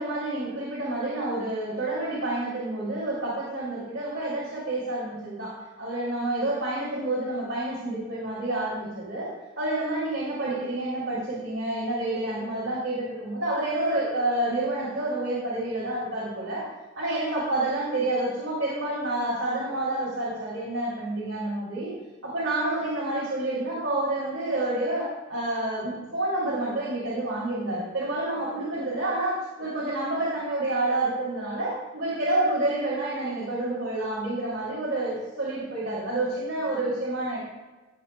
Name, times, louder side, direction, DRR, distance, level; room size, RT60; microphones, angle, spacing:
voice 1, 0.0-9.3 9.6-16.6 17.0-21.9 22.2-37.4, right 2 dB, 75° right, -7 dB, 2.5 m, -29 dB
16.5 x 6.1 x 2.2 m, 1.2 s
head